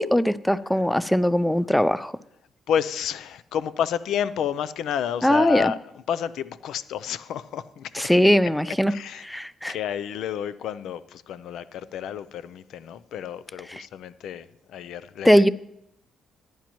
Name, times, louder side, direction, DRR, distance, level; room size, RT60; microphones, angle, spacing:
voice 1, 0.0-2.1 5.2-5.7 7.9-8.9 9.2-9.7 13.7-13.8 15.2-15.5, equal, 5° left, 17 dB, 0.4 m, -20 dB
voice 2, 2.7-5.8 6.1-8.1 8.7-9.2 9.7-15.5, left 8 dB, 80° left, 15 dB, 0.5 m, -30 dB
14.5 x 10.5 x 3.0 m, 0.78 s
cardioid pair, 90°, 0 cm